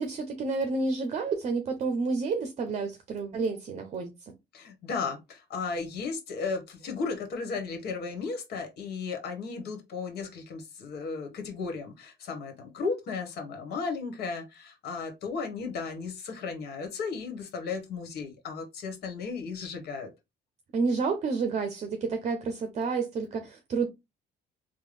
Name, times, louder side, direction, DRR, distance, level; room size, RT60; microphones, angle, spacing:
voice 1, 0.0-4.1 20.7-23.9, right 4 dB, 40° right, 0.6 m, -30 dB
voice 2, 4.5-20.1, left 4 dB, 70° left, 1.2 m, -35 dB
3.7 x 2.2 x 3.2 m
cardioid pair, 110°, 17 cm